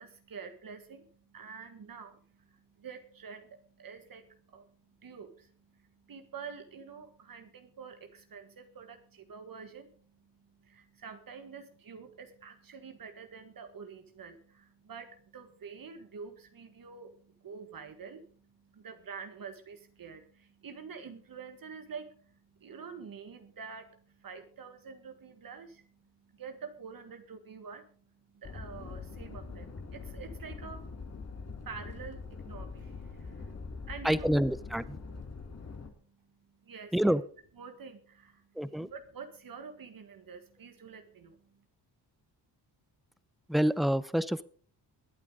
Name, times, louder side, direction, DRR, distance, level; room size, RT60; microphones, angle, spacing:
voice 1, 0.0-4.7 5.0-10.2 10.5-25.9 26.2-28.0 28.3-31.0 31.6-33.6 33.9-34.3 36.6-37.1 37.6-41.4, right 5 dB, 55° right, 7 dB, 1.7 m, -47 dB
sound 1, 28.4-35.9, left 4 dB, 35° left, 2.4 m, -43 dB
voice 2, 34.0-35.0 36.9-37.2 38.6-38.9 43.5-44.4, equal, ahead, 16 dB, 0.7 m, -27 dB
21.5 x 8.5 x 3.9 m, 0.43 s
cardioid pair, 85°, 42 cm